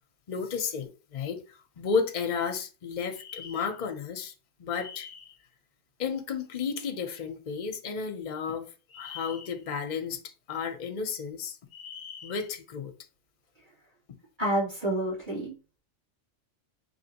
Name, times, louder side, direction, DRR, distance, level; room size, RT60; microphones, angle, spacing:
voice 1, 0.3-1.4 1.8-4.3 4.6-5.3 6.0-10.2 10.5-12.9, left 6 dB, 45° left, 0.7 m, -33 dB
voice 2, 14.4-15.5, right 1 dB, 40° right, 2.8 m, -28 dB
5.1 x 2.8 x 2.9 m
omnidirectional pair, 1.3 m